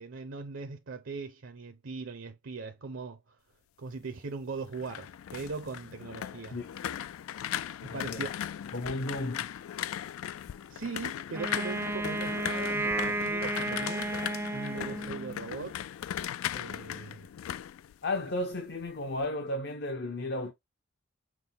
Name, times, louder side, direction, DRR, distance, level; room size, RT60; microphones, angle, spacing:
voice 1, 0.0-3.4 3.8-6.6 7.8-8.3 8.8-9.0 10.7-14.1 14.5-15.8 16.5-17.3, right 4 dB, 70° right, 0.6 m, -40 dB
sound 1, 4.6-18.6 18.9-19.3, left 10 dB, 85° left, 0.3 m, -38 dB
voice 2, 7.9-8.3 8.7-9.5 18.0-20.5, left 1 dB, 50° left, 0.6 m, -34 dB
Wind instrument woodwind instrument, 11.3-15.5, right 2 dB, 10° right, 0.4 m, -33 dB
6.0 x 2.1 x 3.4 m
head